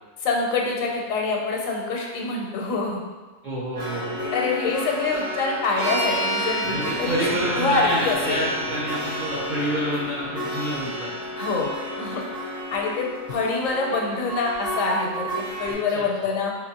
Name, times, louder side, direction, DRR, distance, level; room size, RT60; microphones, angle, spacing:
voice 1, 0.2-3.0 4.3-8.5 11.4-11.7 12.0-12.2 12.7-16.5, left 4 dB, 85° left, -1 dB, 1.0 m, -25 dB
voice 2, 3.4-4.2 6.7-11.1 15.9-16.0, right 1 dB, 55° right, -6 dB, 0.5 m, -28 dB
sound 1, 3.7-15.7, equal, 35° right, 0.9 m, -32 dB
sound 2, 5.8-9.9, right 2 dB, 75° right, 1.0 m, -32 dB
sound 3, 6.6-11.6, left 3 dB, 65° left, 0.6 m, -42 dB
3.5 x 2.9 x 2.8 m, 1.3 s
omnidirectional pair, 1.4 m